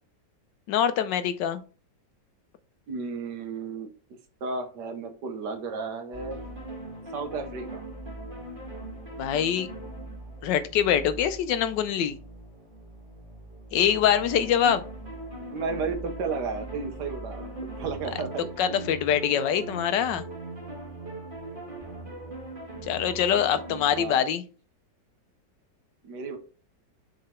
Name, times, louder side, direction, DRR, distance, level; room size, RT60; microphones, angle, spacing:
voice 1, 0.7-1.6 9.2-9.7 10.4-12.2 13.7-14.8 18.6-20.2 22.9-24.4, left 9 dB, 90° left, 12 dB, 1.4 m, -24 dB
voice 2, 2.9-3.9 4.4-6.4 7.1-7.8 15.5-18.5 23.9-24.3 26.0-26.4, right 4 dB, 70° right, 7 dB, 1.6 m, -33 dB
sound 1, 6.1-24.0, right 2 dB, 30° right, 2.1 m, -40 dB
6.7 x 3.9 x 4.4 m, 0.37 s
omnidirectional pair, 1.9 m